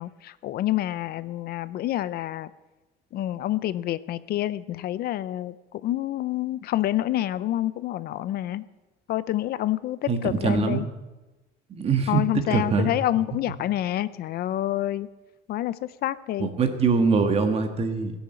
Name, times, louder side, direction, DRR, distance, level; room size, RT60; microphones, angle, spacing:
voice 1, 0.0-2.5 3.1-8.6 9.1-10.9 12.1-15.1 15.5-16.5, left 14 dB, 55° left, 16 dB, 0.5 m, -28 dB
voice 2, 10.1-10.8 11.7-12.2 12.5-12.9 16.4-18.1, right 5 dB, 35° right, 7 dB, 1.6 m, -23 dB
16.5 x 7.1 x 8.9 m, 1.1 s
cardioid pair, 150°, 18 cm